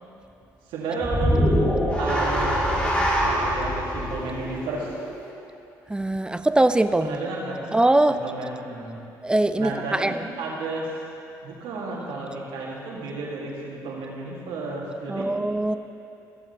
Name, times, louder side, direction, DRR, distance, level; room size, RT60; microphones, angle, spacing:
voice 1, 0.7-1.7 2.0-4.9 7.0-7.6 8.1-9.0 9.6-10.9 11.4-15.3, right 2 dB, 80° right, -3 dB, 1.9 m, -32 dB
sound 1, 1.0-5.4, equal, 15° left, 1.7 m, -24 dB
voice 2, 5.9-7.2 7.7-8.2 9.2-10.3 15.1-15.7, right 1 dB, 10° right, 10 dB, 0.4 m, -22 dB
15.5 x 7.3 x 2.9 m, 2.7 s
supercardioid pair, 65°, 8 cm